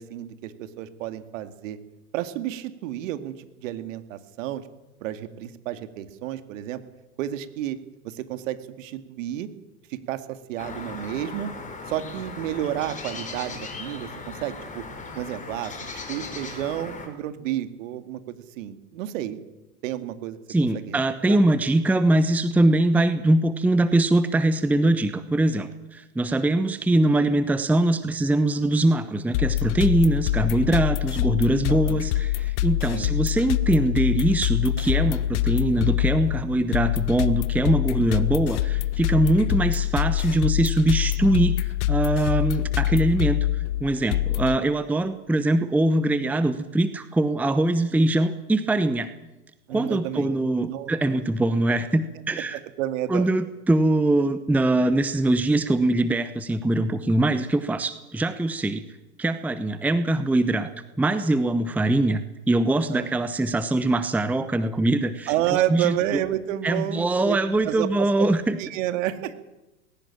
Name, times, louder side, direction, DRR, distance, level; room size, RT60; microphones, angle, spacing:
voice 1, 0.0-1.8 2.1-4.6 5.0-6.8 7.2-7.8 8.0-9.5 9.9-11.5 11.9-14.8 15.2-19.4 19.8-20.4 20.7-21.0 21.3-21.4 31.7-32.0 32.9-33.1 49.7-50.3 50.6-50.9 52.5-53.3 62.9-63.1 65.3-67.4 67.6-68.3 68.6-69.3, right 13 dB, 55° right, 10 dB, 2.3 m, -30 dB
sound 1, 10.6-17.1, left 3 dB, 15° left, 4.8 m, -38 dB
voice 2, 20.5-43.5 43.8-49.1 49.7-52.6 53.1-58.8 59.2-60.7 61.0-66.2 66.6-68.6, right 2 dB, 5° right, 12 dB, 0.9 m, -22 dB
sound 2, 29.3-44.6, left 14 dB, 50° left, 0.9 m, -25 dB
20.0 x 17.5 x 8.8 m, 1.0 s
hypercardioid pair, 105°, 46 cm